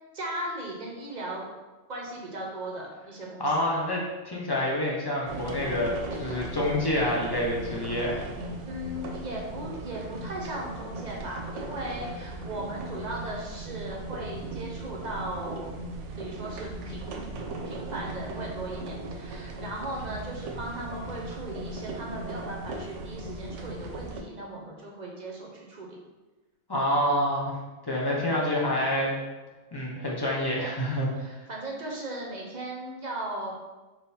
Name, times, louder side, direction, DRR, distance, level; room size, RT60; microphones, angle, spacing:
voice 1, 0.1-1.5 1.9-3.7 8.7-15.7 16.2-17.3 17.6-26.0 31.2-33.5, right 1 dB, 45° right, -2 dB, 0.7 m, -37 dB
voice 2, 3.4-8.2 26.7-27.5 27.9-29.1 29.7-31.1, left 1 dB, 25° left, -4 dB, 0.6 m, -27 dB
sound 1, 5.3-24.2, right 2 dB, 75° right, 0.9 m, -38 dB
3.7 x 3.1 x 4.1 m, 1.2 s
omnidirectional pair, 1.3 m